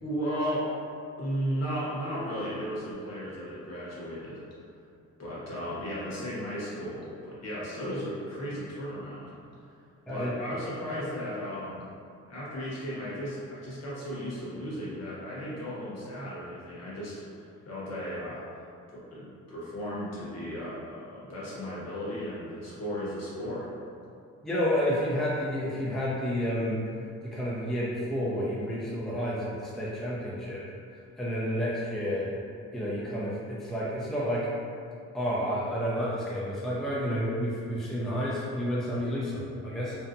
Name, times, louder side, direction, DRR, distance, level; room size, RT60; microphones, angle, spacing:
voice 1, 0.0-0.7 1.2-4.4 5.2-9.3 10.1-11.8 12.3-18.4 18.9-23.7, equal, 60° left, -8 dB, 1.0 m, -35 dB
voice 2, 24.4-26.8 27.2-30.6 31.2-32.3 32.7-34.5 35.1-40.0, equal, ahead, -7 dB, 0.4 m, -30 dB
2.6 x 2.1 x 2.5 m, 2.4 s
cardioid pair, 90°, 30 cm